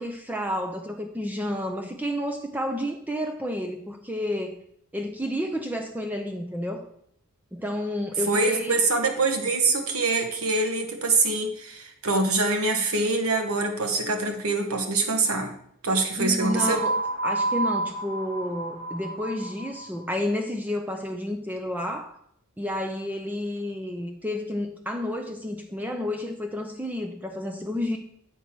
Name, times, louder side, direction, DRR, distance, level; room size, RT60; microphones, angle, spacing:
voice 1, 0.0-4.6 4.9-6.8 7.5-8.8 16.2-16.9 17.2-22.2 22.6-28.0, left 1 dB, 5° right, 3 dB, 0.6 m, -30 dB
voice 2, 8.3-15.5 15.8-16.8, right 3 dB, 70° right, 4 dB, 1.4 m, -24 dB
sound 1, 16.4-20.0, right 2 dB, 40° right, 3.3 m, -30 dB
8.0 x 4.7 x 5.9 m, 0.67 s
head